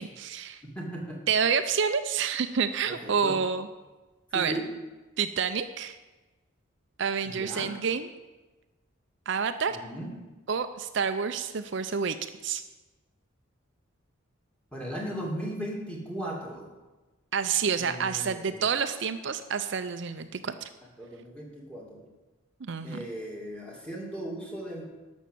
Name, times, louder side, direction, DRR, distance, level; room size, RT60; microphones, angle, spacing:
voice 1, 0.0-0.6 1.3-3.7 4.3-4.5 5.2-6.0 7.0-8.1 9.3-9.8 10.5-12.2 12.4-12.6 17.3-20.7 22.6-23.0, right 6 dB, 60° right, 9 dB, 0.5 m, -28 dB
voice 2, 0.7-1.2 2.9-3.4 4.3-4.7 7.3-7.7 9.8-10.1 14.7-16.7 17.8-18.6 21.0-22.0 22.8-24.8, right 1 dB, 5° left, -2 dB, 2.4 m, -37 dB
12.0 x 6.3 x 7.8 m, 1.2 s
head